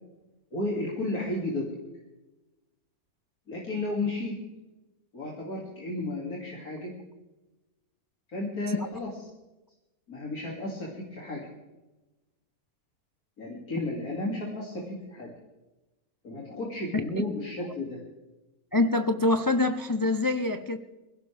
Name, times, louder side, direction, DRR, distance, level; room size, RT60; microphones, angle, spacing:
voice 1, 0.5-1.7 3.5-4.4 5.1-6.9 8.3-9.1 10.1-11.5 13.4-15.3 16.2-18.0, left 2 dB, 75° left, 3.1 m, -33 dB
voice 2, 18.7-20.8, left 2 dB, 30° left, 0.3 m, -25 dB
22.5 x 16.5 x 3.5 m
omnidirectional pair, 1.6 m